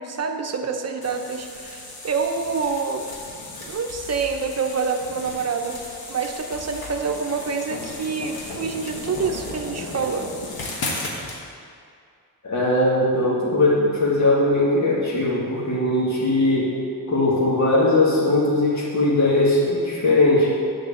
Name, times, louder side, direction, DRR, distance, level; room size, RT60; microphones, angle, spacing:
voice 1, 0.0-3.1 3.6-10.3, right 5 dB, 45° right, 5 dB, 0.8 m, -27 dB
sound 1, 1.0-11.4, left 2 dB, 85° left, 1.5 m, -35 dB
voice 2, 12.4-16.7 17.1-20.5, left 2 dB, 50° left, -6 dB, 2.1 m, -19 dB
9.7 x 4.7 x 7.0 m, 2.3 s
wide cardioid pair, 115°, 36 cm